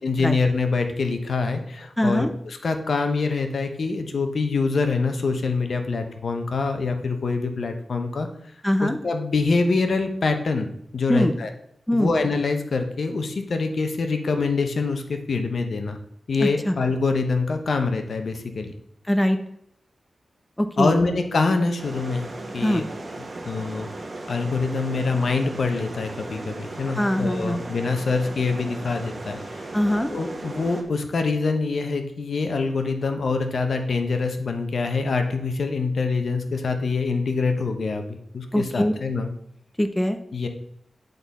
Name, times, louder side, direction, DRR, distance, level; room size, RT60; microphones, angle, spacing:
voice 1, 0.0-8.3 8.8-11.5 11.9-16.0 16.3-18.7 20.8-22.3 22.5-22.9 23.4-23.9 24.3-29.7 30.1-39.3 40.3-40.5, left 4 dB, 65° left, 6 dB, 0.8 m, -25 dB
voice 2, 2.0-2.3 8.6-9.0 11.1-11.3 11.9-12.1 16.4-16.7 19.1-19.4 20.6-21.0 22.6-22.8 27.0-27.6 29.7-30.1 38.5-38.9 39.8-40.2, equal, 10° left, 8 dB, 0.5 m, -22 dB
sound 1, 21.8-30.8, right 2 dB, 45° right, 1.2 m, -36 dB
10.0 x 4.0 x 4.1 m, 0.72 s
cardioid pair, 70°, 0 cm